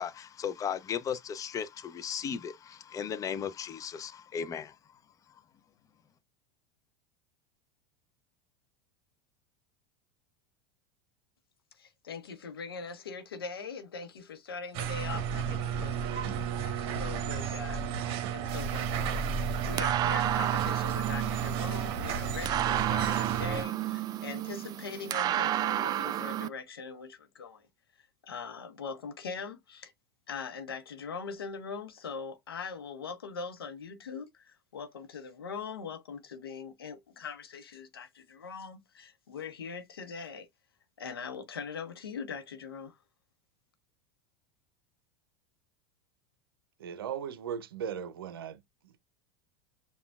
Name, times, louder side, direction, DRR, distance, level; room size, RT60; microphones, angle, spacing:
voice 1, 0.0-4.8, left 7 dB, 30° left, 0.5 m, -36 dB
voice 2, 11.8-27.6 28.0-29.9 30.3-40.5 41.0-43.0, left 5 dB, 85° left, 0.8 m, -42 dB
sound 1, 14.7-23.6, right 7 dB, 50° right, 0.9 m, -32 dB
sound 2, 18.5-26.5, right 12 dB, 35° right, 0.3 m, -32 dB
voice 3, 46.8-49.1, right 8 dB, 80° right, 0.6 m, -38 dB
6.8 x 2.3 x 2.3 m
hypercardioid pair, 85°, 12 cm